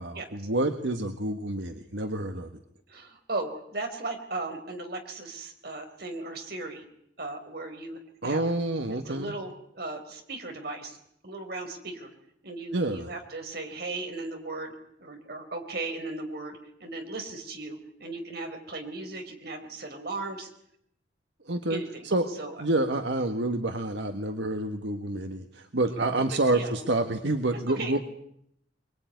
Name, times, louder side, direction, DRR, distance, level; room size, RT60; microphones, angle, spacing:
voice 1, 0.0-2.5 8.2-9.3 12.7-13.1 21.4-22.3 22.6-28.0, right 2 dB, 75° right, 6 dB, 1.6 m, -28 dB
voice 2, 2.9-6.8 7.2-8.5 8.9-11.0 11.2-12.1 12.4-20.5 21.7-22.1 22.3-22.5 26.3-26.8 27.7-28.0, right 2 dB, 60° right, 4 dB, 4.3 m, -37 dB
24.0 x 22.0 x 9.4 m, 0.73 s
head